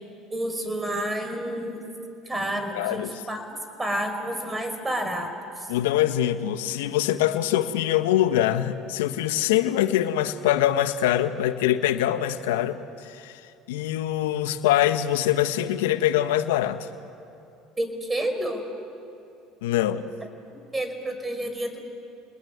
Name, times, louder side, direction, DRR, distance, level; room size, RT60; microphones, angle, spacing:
voice 1, 0.3-1.9 2.3-3.4 3.8-5.7 17.8-18.6 20.7-21.9, right 1 dB, 15° right, 7 dB, 5.2 m, -29 dB
voice 2, 2.8-3.1 5.7-12.8 13.0-13.4 13.7-16.9 19.6-20.1, left 12 dB, 85° left, 10 dB, 1.3 m, -23 dB
30.0 x 20.0 x 9.6 m, 2.6 s
supercardioid pair, 85°, 0 cm